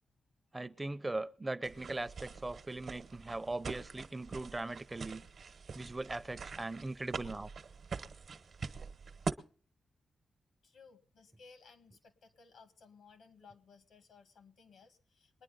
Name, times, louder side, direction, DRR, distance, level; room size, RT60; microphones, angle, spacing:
voice 1, 0.5-5.2 5.7-7.5, right 2 dB, 20° right, 0.5 m, -39 dB
sound 1, 1.6-9.3, right 5 dB, 60° right, 0.9 m, -44 dB
voice 2, 10.6-15.4, left 5 dB, 90° left, 1.8 m, -60 dB
22.0 x 9.9 x 3.9 m
cardioid pair, 85°, 0 cm